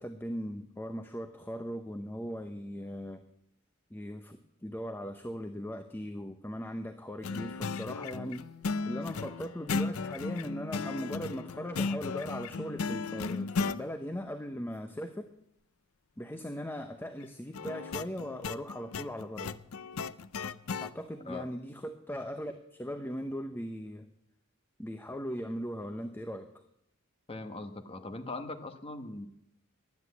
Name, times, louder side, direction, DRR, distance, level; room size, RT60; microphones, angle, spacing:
voice 1, 0.0-3.2 3.9-8.5 8.9-15.3 16.2-19.5 20.8-24.1 24.8-26.5, equal, 10° left, 7 dB, 0.7 m, -39 dB
sound 1, 7.2-13.8 17.5-20.9, left 4 dB, 80° left, 0.6 m, -35 dB
voice 2, 27.3-29.3, left 2 dB, 25° left, 6 dB, 1.2 m, -40 dB
12.0 x 10.0 x 8.3 m, 0.77 s
head